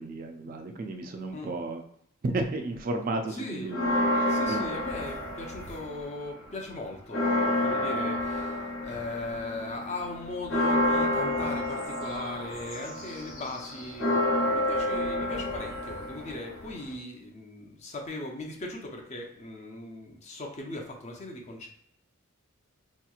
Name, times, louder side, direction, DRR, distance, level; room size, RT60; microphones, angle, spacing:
voice 1, 0.0-1.8 2.2-4.6, right 2 dB, 40° right, 5 dB, 0.3 m, -33 dB
voice 2, 3.3-3.8 4.3-21.7, left 2 dB, 30° left, 2 dB, 0.5 m, -39 dB
sound 1, 3.7-6.1 6.4-16.9, left 1 dB, 70° left, 0.8 m, -29 dB
3.4 x 2.9 x 2.3 m, 0.68 s
head